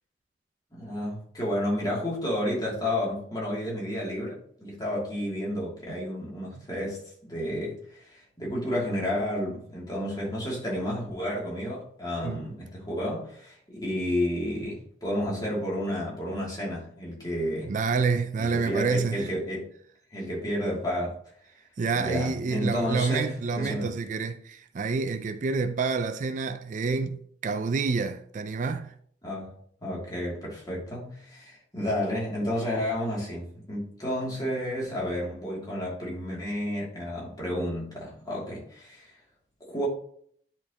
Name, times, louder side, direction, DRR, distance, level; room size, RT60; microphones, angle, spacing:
voice 1, 0.7-17.7 18.4-19.7 20.1-21.2 21.9-23.9 29.2-29.5 29.8-39.2 39.6-39.9, equal, 25° left, 2.5 m, -31 dB
voice 2, 17.7-19.3 21.8-28.9, right 4 dB, 45° right, 0.4 m, -28 dB
10.0 x 4.4 x 2.9 m
head